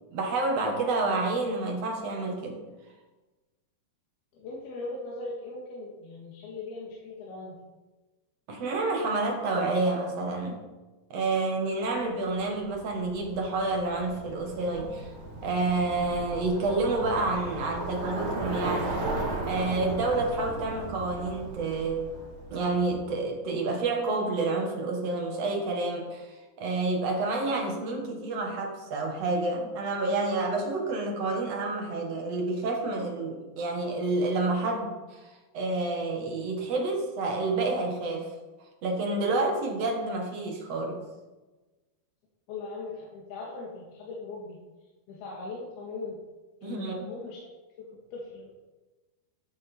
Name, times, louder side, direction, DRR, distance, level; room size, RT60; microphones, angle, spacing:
voice 1, 0.1-2.6 8.5-10.6 11.1-15.1 15.4-19.1 19.5-22.1 22.5-26.3 26.6-35.2 35.5-38.3 38.8-41.0 46.6-46.9, right 3 dB, 50° right, 1 dB, 2.3 m, -29 dB
voice 2, 4.3-7.6 42.5-44.6 45.1-46.2 46.6-47.5 47.8-48.7, left 3 dB, 80° left, -3 dB, 3.6 m, -39 dB
Bicycle, 12.3-23.2, right 2 dB, 70° right, 4.6 m, -36 dB
12.5 x 9.1 x 4.4 m, 1.2 s
omnidirectional pair, 4.5 m